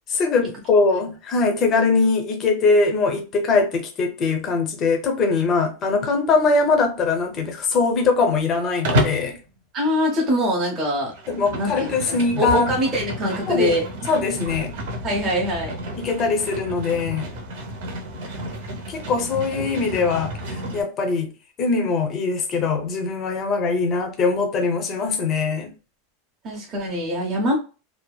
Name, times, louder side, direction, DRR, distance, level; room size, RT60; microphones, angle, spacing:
voice 1, 0.1-9.4 11.3-12.7 13.5-13.7 14.1-14.8 16.0-17.3 18.9-21.3 21.6-25.7, left 4 dB, 25° left, 0.5 m, -22 dB
Livestock farm animals working animals, 8.8-9.3 11.0-20.8, equal, 60° right, 0.8 m, -30 dB
voice 2, 9.7-11.1 11.5-13.8 15.0-15.8 26.4-27.6, equal, 20° right, 0.7 m, -23 dB
2.6 x 2.2 x 2.2 m
supercardioid pair, 175°, 0 cm